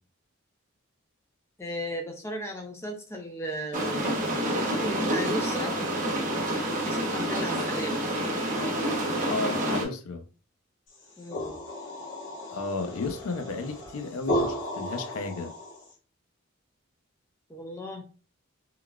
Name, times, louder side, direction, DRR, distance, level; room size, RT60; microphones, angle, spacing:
voice 1, 1.6-4.2 4.8-5.8 6.9-8.0 11.2-11.6 13.6-13.7 17.5-18.0, equal, 10° left, 0.4 m, -35 dB
sound 1, 3.7-9.8, right 1 dB, 35° right, 0.8 m, -28 dB
voice 2, 9.2-10.2 12.5-15.5, left 3 dB, 85° left, 0.5 m, -33 dB
sound 2, 10.9-15.9, equal, 60° left, 1.0 m, -34 dB
3.7 x 2.3 x 2.2 m
head